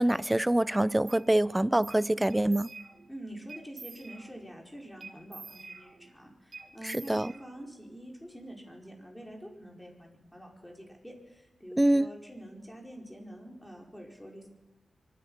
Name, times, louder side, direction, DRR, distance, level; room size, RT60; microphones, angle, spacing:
voice 1, 0.0-2.7 6.8-7.3 11.8-12.1, right 1 dB, 15° right, 0.5 m, -25 dB
sound 1, 1.1-1.2 1.8-2.0 2.3-3.1 3.5-4.5 5.0-6.2 6.5-7.8, right 4 dB, 65° right, 1.9 m, -47 dB
voice 2, 3.1-14.5, equal, 10° left, 5.1 m, -46 dB
24.5 x 10.0 x 5.7 m
cardioid pair, 45°, 0 cm